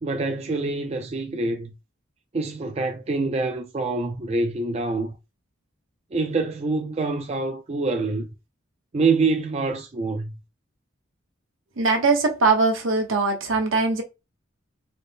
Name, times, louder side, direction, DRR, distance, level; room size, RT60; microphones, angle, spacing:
voice 1, 0.0-1.7 2.3-5.2 6.1-8.3 8.9-10.3, right 3 dB, 30° right, 0.4 m, -25 dB
voice 2, 11.8-14.0, right 3 dB, 75° right, 0.8 m, -21 dB
4.1 x 2.0 x 3.3 m
head